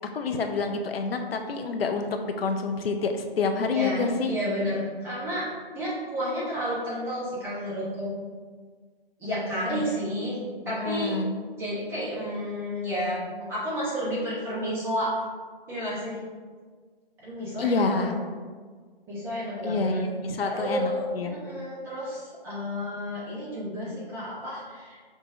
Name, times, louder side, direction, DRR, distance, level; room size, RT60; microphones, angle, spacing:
voice 1, 0.1-4.3 9.7-9.8 10.7-11.4 17.6-18.1 19.6-21.4, left 4 dB, 70° left, 5 dB, 0.6 m, -28 dB
voice 2, 3.7-5.5 5.7-8.2 9.2-10.4 10.6-11.2 11.6-13.2 13.5-15.1 15.7-16.2 17.2-18.1 19.1-20.0 20.4-25.0, equal, 10° right, -8 dB, 0.8 m, -31 dB
5.1 x 2.7 x 3.5 m, 1.6 s
hypercardioid pair, 145°, 30 cm